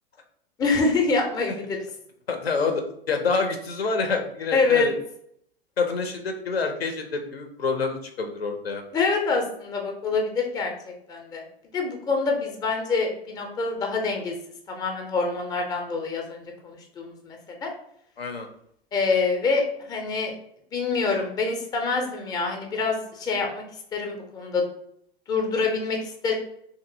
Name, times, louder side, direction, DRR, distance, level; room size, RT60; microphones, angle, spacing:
voice 1, 0.6-1.8 4.5-4.9 8.9-11.4 11.7-14.3 14.7-17.7 18.9-20.3 20.7-23.6 23.9-24.6 25.3-26.3, left 4 dB, 15° left, 2 dB, 0.4 m, -26 dB
voice 2, 2.3-4.9 5.8-8.8 18.2-18.5, left 4 dB, 85° left, 5 dB, 0.6 m, -27 dB
2.8 x 2.6 x 2.5 m, 0.70 s
figure-of-eight pair, 95°, 30 cm